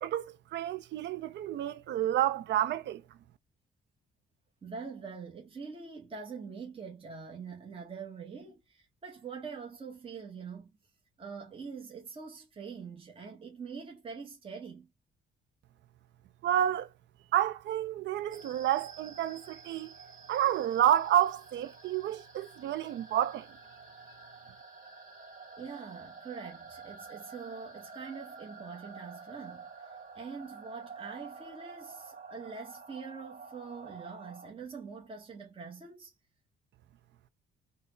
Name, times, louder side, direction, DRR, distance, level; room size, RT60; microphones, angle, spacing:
voice 1, 0.0-3.0 16.4-16.9 17.3-19.9 20.3-23.5, right 11 dB, 65° right, 0.4 m, -29 dB
voice 2, 4.6-10.7 11.2-14.9 25.6-36.1, right 5 dB, 25° right, 0.8 m, -44 dB
sound 1, 18.3-34.5, right 4 dB, 45° right, 1.7 m, -49 dB
4.0 x 2.0 x 2.5 m
cardioid pair, 90°, 20 cm